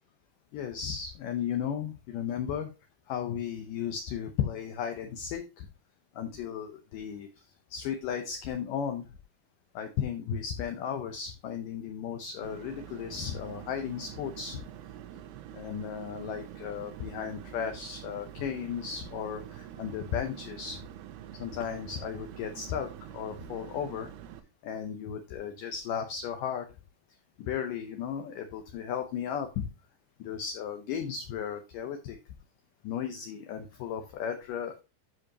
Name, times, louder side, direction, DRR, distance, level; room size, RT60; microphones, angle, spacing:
voice 1, 0.5-2.7 3.1-5.7 6.2-7.3 7.7-9.1 9.7-14.6 15.5-20.8 21.4-24.1 24.6-26.7 27.4-29.7 30.2-32.2 32.8-34.8, left 8 dB, 75° left, 5 dB, 2.0 m, -35 dB
sound 1, 12.4-24.4, right 11 dB, 85° right, 2.8 m, -46 dB
12.5 x 5.0 x 2.8 m, 0.27 s
omnidirectional pair, 4.6 m